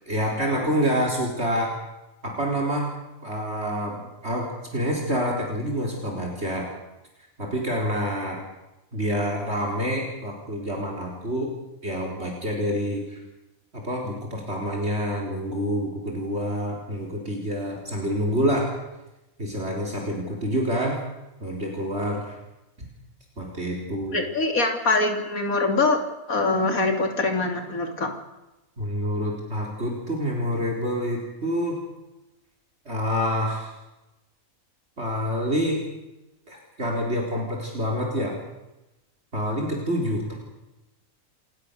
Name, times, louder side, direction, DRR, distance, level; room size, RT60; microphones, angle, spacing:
voice 1, 0.1-1.8 2.2-2.9 3.2-6.7 7.4-8.4 8.9-11.5 11.8-13.2 13.7-18.7 19.4-21.0 21.4-22.4 22.8-22.9 23.4-24.2 28.8-31.8 32.9-33.7 35.0-35.8 36.5-38.4 39.3-40.4, equal, 50° right, 0 dB, 4.3 m, -27 dB
voice 2, 24.1-26.0 26.3-28.1, left 3 dB, 80° left, 4 dB, 3.5 m, -23 dB
27.5 x 19.5 x 6.8 m, 0.99 s
omnidirectional pair, 1.5 m